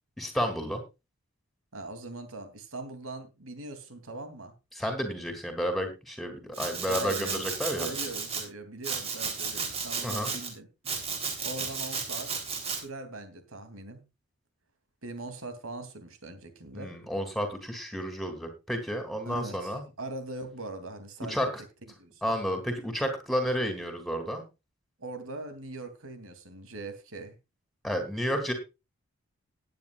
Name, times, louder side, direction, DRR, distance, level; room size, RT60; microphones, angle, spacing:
voice 1, 0.2-0.8 4.7-7.9 10.0-10.3 16.7-19.8 21.3-21.5 22.2-24.4 27.8-28.5, equal, ahead, 6 dB, 3.1 m, -31 dB
voice 2, 1.7-4.5 6.9-7.5 7.8-10.7 11.4-12.3 12.8-14.0 15.0-16.9 19.2-21.5 21.9-22.3 25.0-27.3 28.5-28.6, right 2 dB, 80° right, 9 dB, 3.0 m, -41 dB
Domestic sounds home sounds, 6.5-8.4 8.8-10.5 10.9-12.8, right 5 dB, 30° right, 3.6 m, -34 dB
18.5 x 9.7 x 2.5 m, 0.27 s
head